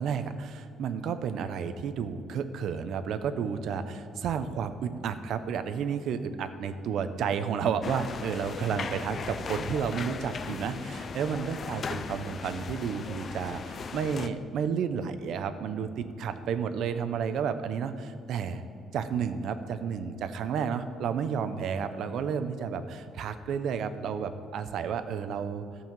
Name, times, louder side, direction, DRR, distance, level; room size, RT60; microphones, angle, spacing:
voice 1, 0.0-18.6 18.9-25.6, right 7 dB, 65° right, 10 dB, 0.7 m, -31 dB
sound 1, 7.8-14.3, left 5 dB, 35° left, 0.4 m, -37 dB
13.5 x 5.6 x 7.2 m, 2.4 s
cardioid pair, 155°, 0 cm